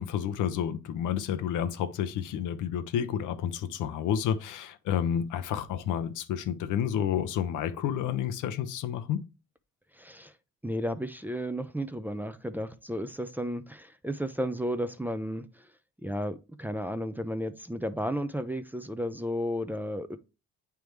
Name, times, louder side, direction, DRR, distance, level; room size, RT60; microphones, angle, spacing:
voice 1, 0.0-9.2, left 9 dB, 85° left, 0.7 m, -30 dB
voice 2, 9.9-10.3 10.6-15.7 16.0-20.2, equal, 5° right, 0.5 m, -33 dB
9.1 x 3.4 x 3.2 m
cardioid pair, 90°, 30 cm